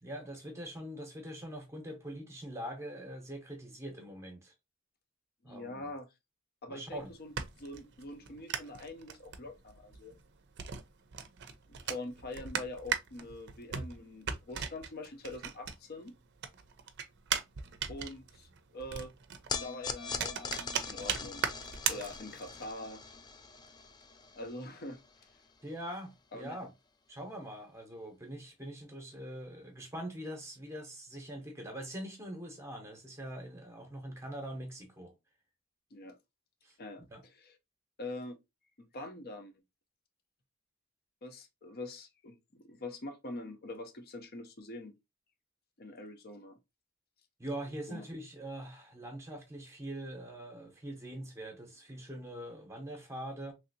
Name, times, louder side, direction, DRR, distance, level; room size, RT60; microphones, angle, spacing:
voice 1, 0.0-4.5 5.4-5.8 6.7-7.1 25.6-26.7 27.1-35.1 36.6-36.8 37.1-37.2 47.4-53.5, right 1 dB, 15° right, 0.8 m, -43 dB
voice 2, 5.4-6.1 6.6-7.3 7.6-10.2 11.7-16.1 17.9-19.1 19.6-21.4 21.9-23.0 24.3-25.0 26.3-26.6 35.9-36.2 36.8-37.5 38.0-38.4 38.8-39.5 41.2-44.9 45.8-46.6 47.9-48.1, left 2 dB, 50° left, 0.7 m, -44 dB
sound 1, 6.9-16.1 16.4-22.6, right 8 dB, 55° right, 0.5 m, -38 dB
sound 2, 19.5-25.9, left 5 dB, 20° left, 0.3 m, -42 dB
3.2 x 2.7 x 2.6 m
head